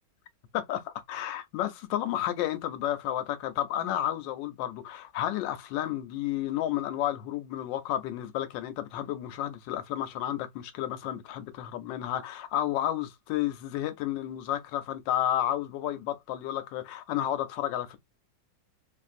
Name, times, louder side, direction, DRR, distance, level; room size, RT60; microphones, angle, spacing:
voice 1, 0.5-18.0, left 12 dB, 80° left, 1.2 m, -31 dB
3.0 x 2.6 x 2.4 m
omnidirectional pair, 2.0 m